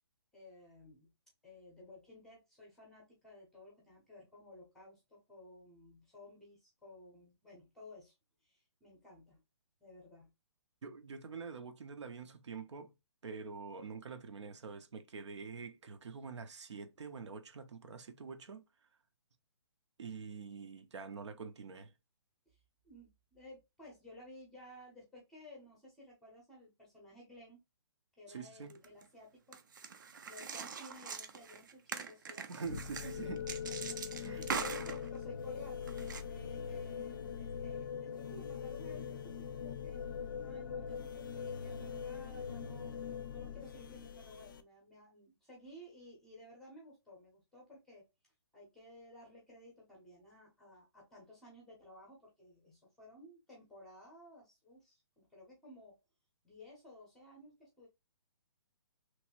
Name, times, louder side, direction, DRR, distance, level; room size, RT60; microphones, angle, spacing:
voice 1, 0.3-1.1 1.4-8.1 8.4-9.4 9.8-10.3 22.5-22.6 22.8-27.6 28.2-29.6 30.2-32.7 33.9-40.1 40.4-42.9 43.3-48.1 48.5-56.0 56.4-57.9, left 1 dB, 5° left, 0.6 m, -55 dB
voice 2, 10.8-12.9 13.2-18.6 20.0-21.9 28.3-28.7 32.5-33.5 34.2-34.4, right 5 dB, 85° right, 0.8 m, -46 dB
sound 1, 28.6-29.1 29.5-35.2 35.9-36.2, right 6 dB, 45° right, 0.5 m, -42 dB
sound 2, 32.6-44.6, left 7 dB, 45° left, 0.4 m, -42 dB
3.0 x 2.6 x 2.9 m
hypercardioid pair, 175°, 15 cm